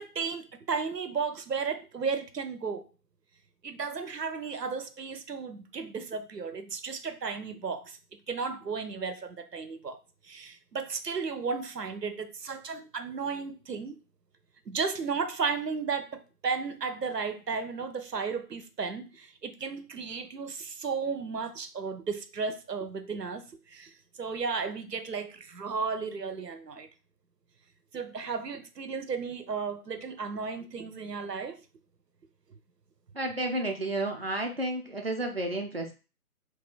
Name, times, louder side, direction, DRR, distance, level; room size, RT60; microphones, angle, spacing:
voice 1, 0.0-2.8 3.6-8.0 8.3-10.0 10.2-14.0 14.7-26.9 27.9-31.6, right 5 dB, 85° right, 0.7 m, -34 dB
voice 2, 33.1-35.9, right 1 dB, 40° right, 0.5 m, -31 dB
2.7 x 2.4 x 3.9 m
figure-of-eight pair, 155°, 47 cm